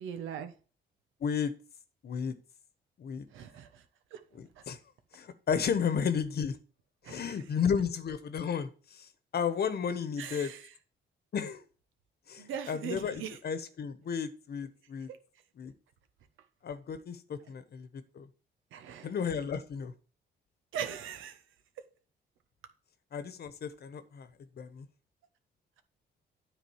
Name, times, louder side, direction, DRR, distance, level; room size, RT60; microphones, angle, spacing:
voice 1, 0.0-0.5 3.3-3.8 4.1-4.2 4.6-4.7 7.0-7.4 10.2-10.7 12.4-13.4 18.7-19.1 20.7-21.4, right 8 dB, 85° right, 1.2 m, -40 dB
voice 2, 1.2-1.5 2.0-2.3 3.0-3.2 4.3-4.8 5.1-6.6 7.1-10.5 11.3-11.6 12.3-15.1 15.6-15.7 16.6-17.9 18.1-18.3 19.0-19.9 23.1-24.3 24.6-24.9, left 7 dB, 55° left, 1.1 m, -33 dB
9.5 x 3.8 x 7.2 m
cardioid pair, 90°, 20 cm